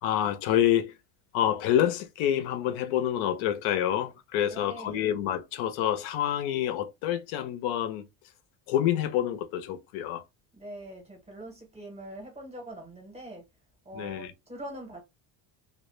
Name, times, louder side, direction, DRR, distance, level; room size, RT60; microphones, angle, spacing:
voice 1, 0.0-1.0 1.3-8.1 8.7-10.2 13.9-14.3, left 11 dB, 75° left, 0.6 m, -27 dB
voice 2, 4.4-5.1 10.5-13.4 13.8-15.0, right 1 dB, 15° right, 0.6 m, -43 dB
2.0 x 2.0 x 3.0 m
cardioid pair, 165°, 50 cm